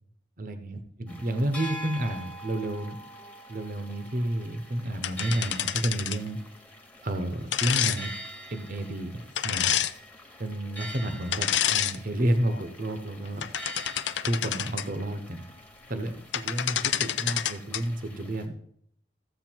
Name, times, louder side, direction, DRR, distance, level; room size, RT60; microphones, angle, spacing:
voice 1, 0.4-3.0 3.5-6.4 7.0-8.1 8.5-9.7 10.4-13.5 14.2-15.4 15.9-18.6, right 1 dB, 50° right, 8 dB, 0.9 m, -30 dB
sound 1, 1.1-18.5, equal, 10° left, 1.3 m, -45 dB
sound 2, 5.0-6.3 7.5-8.0 9.4-9.9 11.3-12.0 12.5-12.6 13.3-14.9 16.1-16.2 16.3-17.8, left 10 dB, 85° left, 0.6 m, -28 dB
14.0 x 8.2 x 4.6 m, 0.68 s
head